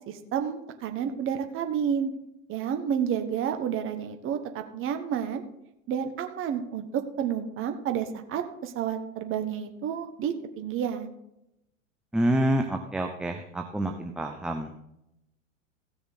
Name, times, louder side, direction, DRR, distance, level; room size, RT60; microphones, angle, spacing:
voice 1, 0.1-2.1 2.5-5.5 5.9-11.1, right 8 dB, 30° right, 6 dB, 1.3 m, -30 dB
voice 2, 12.1-14.7, right 1 dB, ahead, 4 dB, 0.6 m, -27 dB
16.0 x 6.9 x 4.1 m, 0.82 s
hypercardioid pair, 110°, 41 cm